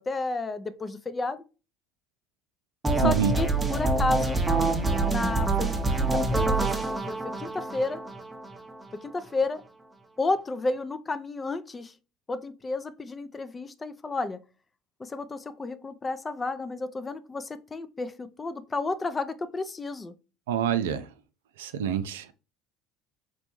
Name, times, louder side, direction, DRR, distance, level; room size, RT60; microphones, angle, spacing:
voice 1, 0.0-1.4 3.0-4.4 5.0-8.0 9.0-9.6 10.2-11.9 12.3-14.4 15.0-20.1, left 3 dB, 25° left, 0.5 m, -32 dB
sound 1, 2.8-8.8, right 3 dB, 15° right, 0.7 m, -26 dB
voice 2, 3.0-3.3 20.5-21.1 21.6-22.3, right 9 dB, 85° right, 0.4 m, -26 dB
4.1 x 2.2 x 3.0 m
hypercardioid pair, 80°, 0 cm